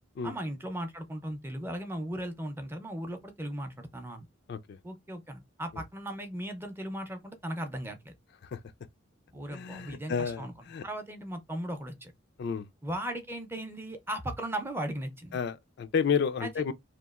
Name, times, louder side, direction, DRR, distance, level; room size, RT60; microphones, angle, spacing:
voice 1, 0.2-4.3 4.8-8.1 9.3-10.5 10.8-12.1 12.8-15.4 16.4-16.5, right 1 dB, 10° right, 0.5 m, -37 dB
voice 2, 9.5-10.8 12.4-12.7 15.3-16.7, left 6 dB, 55° left, 0.3 m, -31 dB
2.9 x 2.4 x 2.3 m
head